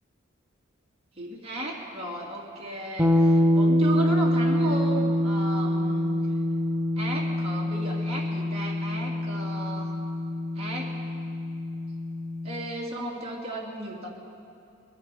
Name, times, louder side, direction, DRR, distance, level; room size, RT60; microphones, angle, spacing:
voice 1, 1.2-6.1 7.0-9.9 10.6-10.9 12.4-14.1, right 1 dB, 30° right, -4 dB, 2.4 m, -35 dB
sound 1, 3.0-12.8, left 1 dB, 15° right, 0.8 m, -25 dB
22.0 x 10.5 x 4.9 m, 2.7 s
head